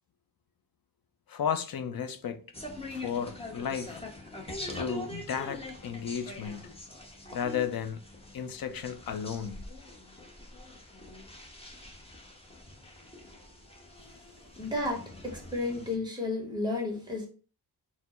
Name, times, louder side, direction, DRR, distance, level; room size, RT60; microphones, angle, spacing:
voice 1, 1.3-2.4 2.9-4.0 4.7-6.7 7.3-8.0 8.3-9.6 15.7-15.8, left 7 dB, 60° left, 0.6 m, -34 dB
sound 1, 2.5-16.0, left 1 dB, 15° left, 0.8 m, -44 dB
voice 2, 14.6-17.3, left 2 dB, 10° right, 1.2 m, -32 dB
4.3 x 2.1 x 4.2 m
wide cardioid pair, 130°, 41 cm